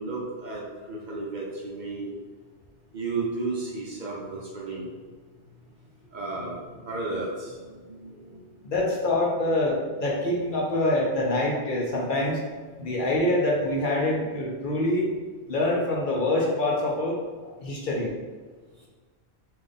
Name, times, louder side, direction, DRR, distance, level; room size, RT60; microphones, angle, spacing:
voice 1, 0.0-2.1 2.9-4.9 6.1-8.4, right 3 dB, 50° right, -3 dB, 0.7 m, -33 dB
voice 2, 8.6-12.4 12.8-15.1 15.5-17.2 17.6-18.1, left 1 dB, 55° left, -2 dB, 0.7 m, -25 dB
3.6 x 2.6 x 3.4 m, 1.4 s
omnidirectional pair, 1.1 m